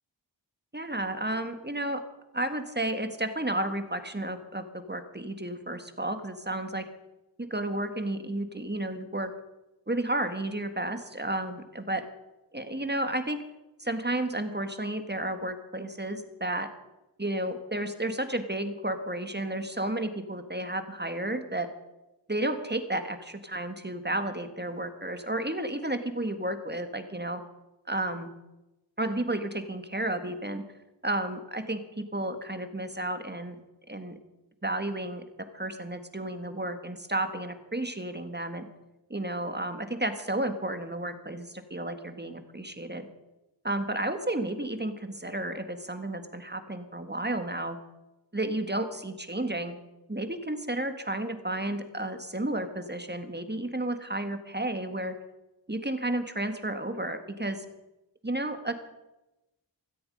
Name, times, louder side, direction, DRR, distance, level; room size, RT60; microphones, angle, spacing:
voice 1, 0.7-2.0 2.3-6.8 7.4-9.3 9.9-12.0 12.5-13.4 13.8-16.7 17.2-21.7 22.3-27.4 27.9-28.3 29.0-30.6 31.0-33.5 33.9-34.2 34.6-35.2 35.5-38.7 39.1-43.1 43.6-47.8 48.3-49.7 50.1-55.2 55.7-57.6 58.2-58.7, right 1 dB, 25° right, 8 dB, 1.6 m, -32 dB
16.5 x 14.0 x 5.4 m, 0.99 s
wide cardioid pair, 40°, 43 cm